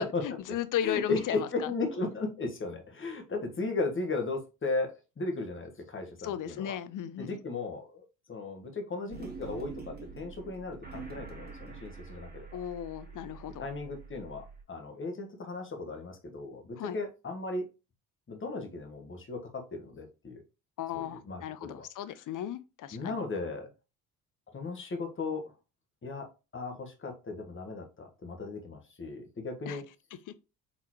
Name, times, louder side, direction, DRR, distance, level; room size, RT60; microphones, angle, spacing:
voice 1, 0.0-1.7 6.2-7.4 12.5-13.7 16.8-17.0 20.8-23.2 29.7-29.8, left 10 dB, 45° left, 0.6 m, -35 dB
voice 2, 0.8-6.7 7.2-8.0 8.3-12.5 13.6-17.7 18.3-20.4 20.9-21.8 22.9-23.7 24.5-25.4 26.0-26.3 26.5-29.8, left 3 dB, 25° left, 1.4 m, -36 dB
sound 1, 9.1-14.6, right 5 dB, 20° right, 1.9 m, -46 dB
4.0 x 3.9 x 3.0 m
hypercardioid pair, 60°, 45 cm